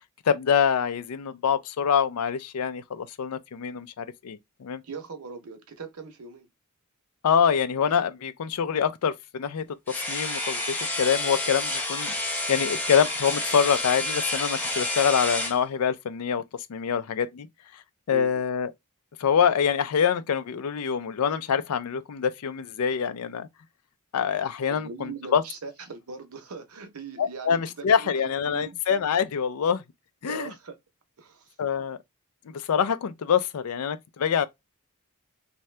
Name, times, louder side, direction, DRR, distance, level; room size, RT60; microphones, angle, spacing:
voice 1, 0.3-4.8 7.2-12.1 12.5-16.4 16.7-17.5 18.1-18.7 19.2-23.5 24.1-25.4 27.2-29.8 30.2-30.5 31.6-32.0 32.5-34.4, left 7 dB, 80° left, 0.4 m, -25 dB
voice 2, 4.8-6.5 13.5-13.7 18.1-18.4 24.7-28.8 30.3-30.8 31.2-31.5, right 4 dB, 85° right, 0.7 m, -41 dB
sound 1, 9.9-15.6, left 2 dB, 10° left, 0.7 m, -29 dB
2.7 x 2.2 x 3.2 m
head